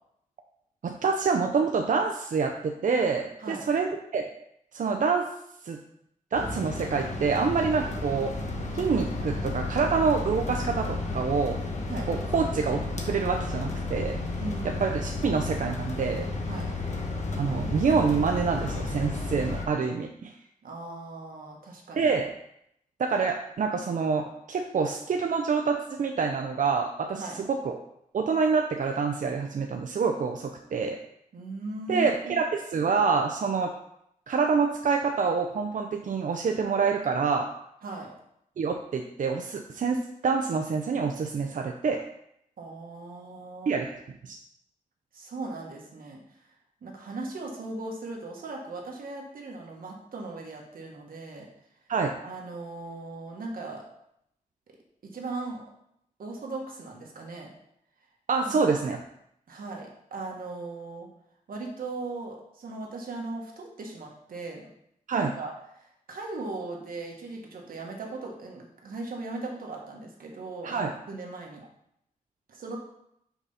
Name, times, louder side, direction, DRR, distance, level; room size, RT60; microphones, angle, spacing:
voice 1, 0.8-4.3 4.7-5.3 5.6-5.8 6.3-8.3 8.7-11.6 12.1-12.8 13.0-14.2 14.8-16.2 17.4-20.3 22.0-22.3 23.0-27.8 28.1-31.0 31.9-33.7 34.3-37.5 38.6-42.0 43.7-43.9 44.2-44.4 51.9-52.1 58.3-59.0 65.1-65.3 70.6-70.9, right 5 dB, 65° right, 3 dB, 0.5 m, -26 dB
sound 1, 6.3-19.7, left 2 dB, 55° left, 1.1 m, -32 dB
voice 2, 14.4-14.9 16.5-16.7 20.6-22.1 27.1-27.4 31.3-32.4 37.8-38.1 42.6-43.7 45.1-46.2 46.8-51.5 52.2-53.8 55.1-55.6 56.2-57.5 58.4-58.7 59.5-61.1 61.5-64.7 65.1-71.6 72.5-72.8, right 3 dB, 90° right, 0 dB, 1.5 m, -38 dB
5.9 x 4.1 x 5.6 m, 0.76 s
wide cardioid pair, 115°, 14 cm